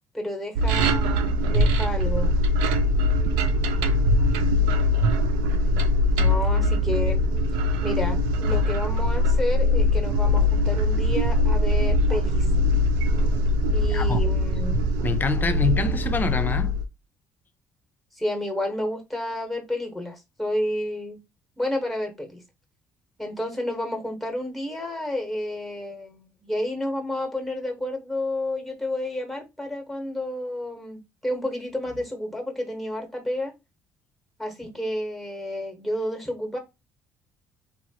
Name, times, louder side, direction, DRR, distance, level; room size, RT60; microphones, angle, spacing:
voice 1, 0.1-2.3 6.2-7.2 7.8-12.5 13.7-14.8 18.1-21.2 21.6-22.4 23.2-33.5 34.4-36.6, left 1 dB, ahead, 1.1 m, -30 dB
sound 1, 0.6-16.8, left 1 dB, 90° right, 0.3 m, -22 dB
voice 2, 13.8-14.2 15.0-16.7, left 3 dB, 25° left, 0.5 m, -26 dB
2.8 x 2.3 x 2.8 m
supercardioid pair, 75°, 7 cm